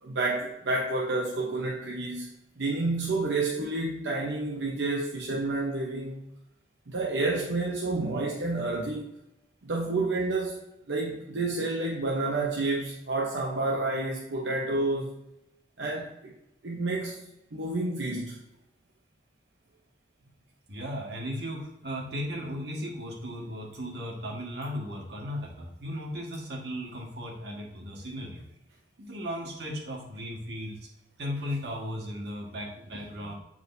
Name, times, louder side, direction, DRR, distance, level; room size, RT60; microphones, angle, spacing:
voice 1, 0.0-2.3 2.6-6.2 6.9-9.1 9.6-15.1 15.8-16.3 16.6-17.2 17.5-18.4 33.2-33.3, right 2 dB, 90° right, -2 dB, 0.9 m, -29 dB
voice 2, 20.7-28.4 29.0-30.9 31.2-33.3, equal, 70° right, -2 dB, 1.7 m, -36 dB
7.9 x 4.7 x 2.7 m, 0.88 s
head